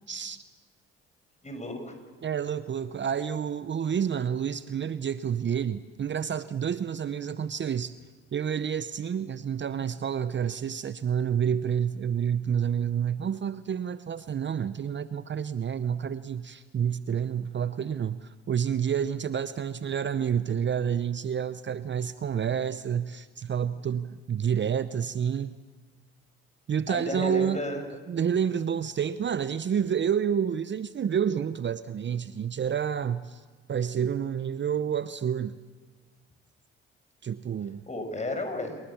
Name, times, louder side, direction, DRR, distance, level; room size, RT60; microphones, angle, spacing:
voice 1, 0.1-0.4 2.2-8.0 8.3-25.6 26.7-27.6 28.1-35.6 37.2-37.8, right 8 dB, 40° right, 15 dB, 0.8 m, -29 dB
voice 2, 1.4-2.0 26.9-27.8 37.9-38.8, left 1 dB, 25° left, 6 dB, 6.4 m, -33 dB
28.0 x 19.0 x 7.1 m, 1.4 s
hypercardioid pair, 55°, 29 cm